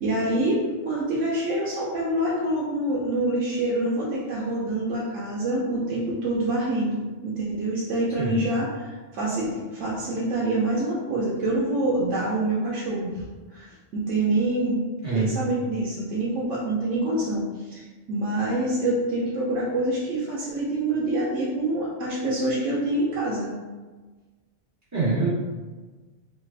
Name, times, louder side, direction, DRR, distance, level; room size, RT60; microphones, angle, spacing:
voice 1, 0.0-13.2 13.5-14.8 15.1-23.5, right 1 dB, 75° right, -6 dB, 1.0 m, -26 dB
voice 2, 24.9-25.3, right 3 dB, 15° right, -11 dB, 1.2 m, -24 dB
3.3 x 2.3 x 3.3 m, 1.3 s
omnidirectional pair, 1.3 m